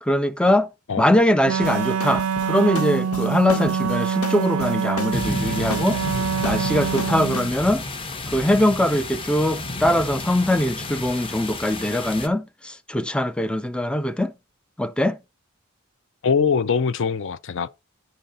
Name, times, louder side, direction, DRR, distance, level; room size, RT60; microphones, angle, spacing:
voice 1, 0.0-0.7 1.0-6.0 6.4-7.8 8.3-14.3 14.8-15.2, left 1 dB, 5° left, 0.3 m, -22 dB
Wind instrument woodwind instrument, 1.4-7.5, right 7 dB, 65° right, 0.4 m, -25 dB
sound 1, 1.6-7.5, left 4 dB, 85° left, 1.3 m, -34 dB
sound 2, 5.1-12.3, left 2 dB, 25° left, 0.7 m, -31 dB
voice 2, 16.2-17.7, left 6 dB, 60° left, 0.5 m, -22 dB
10.0 x 3.9 x 5.4 m
head